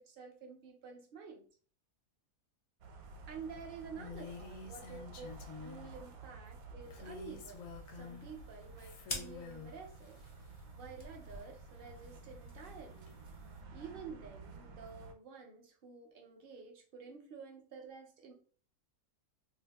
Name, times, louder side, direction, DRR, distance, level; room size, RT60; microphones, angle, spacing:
voice 1, 0.0-1.5 3.3-5.3 5.6-10.2 10.7-13.2 13.7-18.3, right 5 dB, 55° right, 3 dB, 0.6 m, -50 dB
sound 1, 2.8-15.1, right 3 dB, 75° right, 1.1 m, -52 dB
Female speech woman speaking, 4.0-5.9 6.9-8.3 8.8-9.7, left 5 dB, 70° left, 1.0 m, -49 dB
sound 2, 6.8-13.6, left 2 dB, 50° left, 0.4 m, -51 dB
2.6 x 2.3 x 3.4 m, 0.42 s
omnidirectional pair, 1.5 m